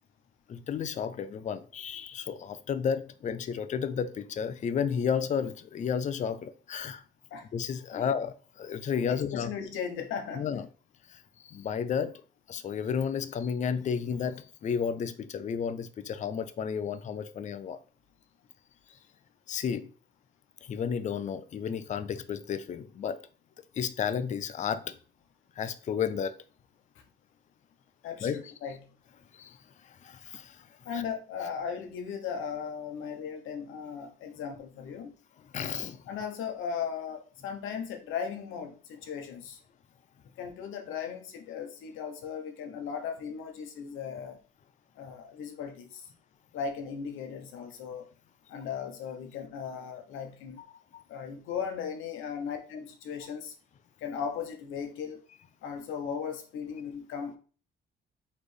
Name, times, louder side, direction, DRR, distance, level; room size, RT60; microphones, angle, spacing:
voice 1, 0.5-7.0 7.5-9.5 10.4-10.7 11.1-12.2 12.5-17.8 19.5-19.9 20.6-23.2 23.8-25.0 25.6-26.4 28.2-28.5 29.3-29.6 29.8-30.7 30.9-31.0 35.5-36.0 50.9-51.0, left 7 dB, 40° left, 0.4 m, -32 dB
voice 2, 9.1-10.6 28.0-28.9 30.8-35.1 36.1-39.6 40.4-44.4 44.9-46.1 46.5-48.1 48.5-50.6 51.1-53.5 54.0-55.2 55.6-57.4, left 7 dB, 85° left, 0.9 m, -37 dB
4.2 x 3.1 x 3.3 m
cardioid pair, 90°, 20 cm